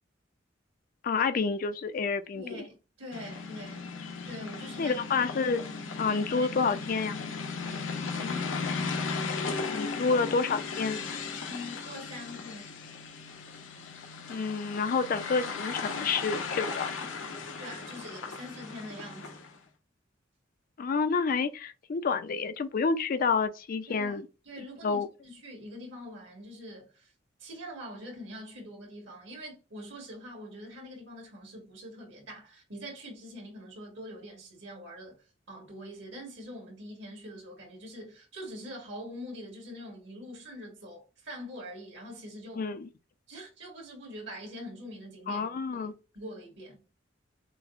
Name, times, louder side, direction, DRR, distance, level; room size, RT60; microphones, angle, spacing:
voice 1, 1.0-2.4 4.8-5.6 6.0-7.2 9.7-11.0 14.3-16.9 20.8-24.3 24.8-25.1 42.6-42.9 45.3-45.9, left 4 dB, 45° left, 0.4 m, -29 dB
voice 2, 2.3-3.9 4.2-5.0 6.1-6.8 8.1-8.5 11.5-12.7 17.6-19.4 23.9-24.2 24.5-27.1 27.4-42.7 43.3-45.5 45.7-46.8, equal, 65° right, 2.1 m, -44 dB
sound 1, 3.1-19.6, left 4 dB, 85° left, 0.7 m, -36 dB
6.0 x 2.0 x 2.4 m
head